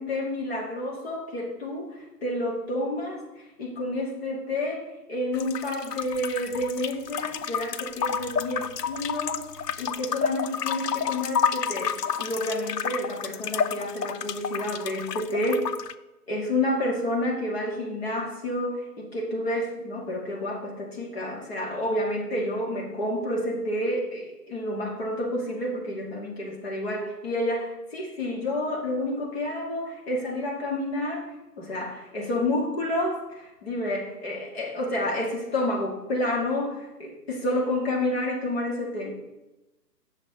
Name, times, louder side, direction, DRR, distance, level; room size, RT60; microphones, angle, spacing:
voice 1, 0.0-15.7 16.3-31.3 31.6-39.1, left 1 dB, 40° left, -1 dB, 1.9 m, -29 dB
sound 1, 5.3-15.9, left 7 dB, 75° left, 0.6 m, -30 dB
8.4 x 6.5 x 3.7 m, 0.99 s
figure-of-eight pair, 140°, 49 cm